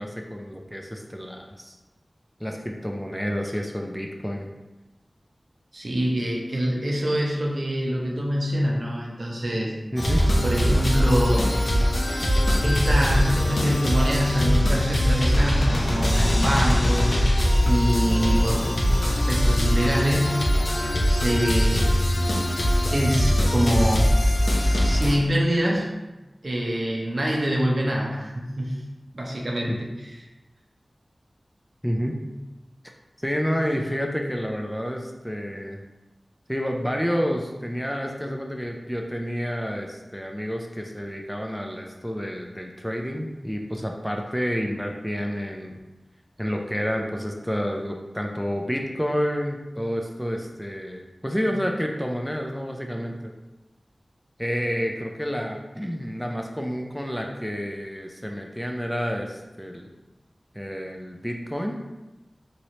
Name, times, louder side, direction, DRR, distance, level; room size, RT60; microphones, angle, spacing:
voice 1, 0.0-1.8 2.4-4.5 9.9-10.2 29.7-29.8 31.8-32.2 33.2-35.8 36.5-45.8 46.4-53.3 54.4-59.9 60.5-61.8, equal, 5° left, 2 dB, 0.3 m, -29 dB
voice 2, 5.7-9.7 10.4-11.5 12.6-18.7 19.1-20.4 21.1-21.9 22.9-24.1 24.8-25.9 26.4-28.8 29.1-29.8, equal, 60° right, -2 dB, 0.6 m, -25 dB
sound 1, 10.0-25.2, equal, 65° left, 0.5 m, -21 dB
3.0 x 3.0 x 2.7 m, 1.1 s
wide cardioid pair, 60°, 0 cm